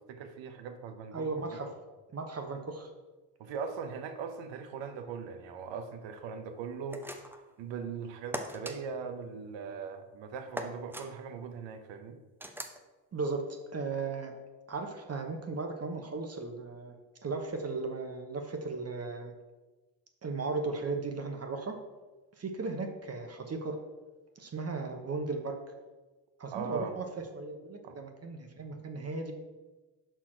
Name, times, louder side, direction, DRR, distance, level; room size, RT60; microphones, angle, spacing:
voice 1, 0.0-1.6 3.4-7.2 7.6-12.2 26.5-27.0 27.8-28.0, right 6 dB, 65° right, 7 dB, 0.9 m, -40 dB
voice 2, 1.1-1.7 2.1-2.9 13.1-14.3 14.7-16.9 17.2-19.3 20.2-21.8 22.4-23.8 24.4-25.6 26.4-27.1 27.3-29.3, right 3 dB, 30° right, 4 dB, 1.0 m, -36 dB
sound 1, 6.9-7.5 8.3-8.8 10.5-11.1 12.4-12.8, right 1 dB, 5° right, 0.7 m, -39 dB
5.7 x 4.5 x 4.4 m, 1.2 s
hypercardioid pair, 60°, 48 cm